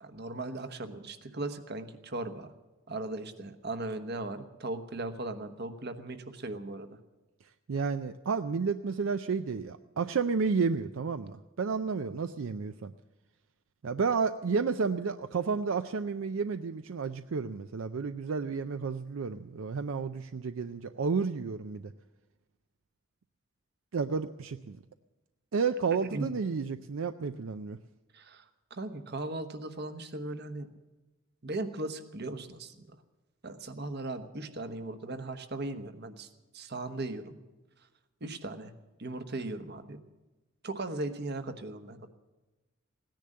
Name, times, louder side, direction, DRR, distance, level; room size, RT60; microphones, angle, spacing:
voice 1, 0.0-2.5 2.9-7.0 26.0-26.3 28.1-30.7 31.4-33.0 33.4-37.3 38.2-38.7 39.0-40.0 40.6-42.1, right 2 dB, 55° right, 8 dB, 1.1 m, -38 dB
voice 2, 7.7-12.9 13.8-21.9 23.9-24.8 25.5-27.8, right 5 dB, 75° right, 10 dB, 0.5 m, -31 dB
17.0 x 10.5 x 7.6 m, 1.2 s
head